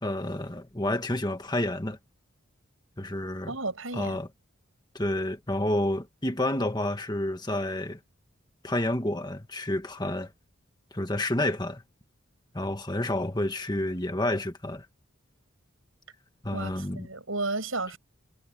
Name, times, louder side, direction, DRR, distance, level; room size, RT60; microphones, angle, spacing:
voice 1, 0.0-2.0 3.0-3.6 3.9-4.3 4.9-8.0 8.6-10.3 10.9-11.8 12.5-14.9 16.4-17.1, left 1 dB, 20° left, 1.6 m, -29 dB
voice 2, 3.5-4.2 16.5-18.0, right 3 dB, 75° right, 7.1 m, -33 dB
head